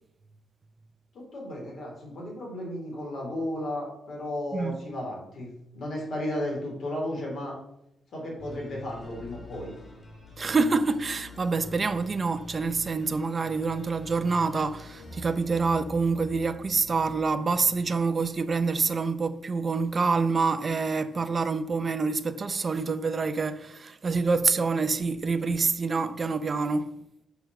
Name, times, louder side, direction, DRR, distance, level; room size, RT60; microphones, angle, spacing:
voice 1, 1.1-7.6 8.1-9.7, left 1 dB, 60° left, 3.4 m, -34 dB
voice 2, 4.5-4.8 10.4-26.9, right 4 dB, 35° right, 0.6 m, -26 dB
sound 1, 8.4-18.2, left 2 dB, 25° left, 2.9 m, -46 dB
6.9 x 4.5 x 6.4 m
wide cardioid pair, 140°, 0 cm